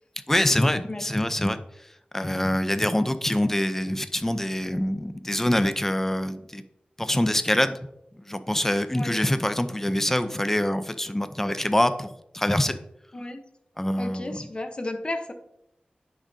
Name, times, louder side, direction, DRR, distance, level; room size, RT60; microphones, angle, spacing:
voice 1, 0.3-1.9 2.1-6.6 7.0-7.8 8.1-12.8 13.8-14.5, left 1 dB, 10° left, 10 dB, 0.5 m, -25 dB
voice 2, 0.9-1.3 9.0-9.2 13.1-13.4 14.0-15.3, left 2 dB, 35° left, 7 dB, 0.9 m, -33 dB
9.7 x 6.3 x 2.7 m, 0.79 s
wide cardioid pair, 95°, 3 cm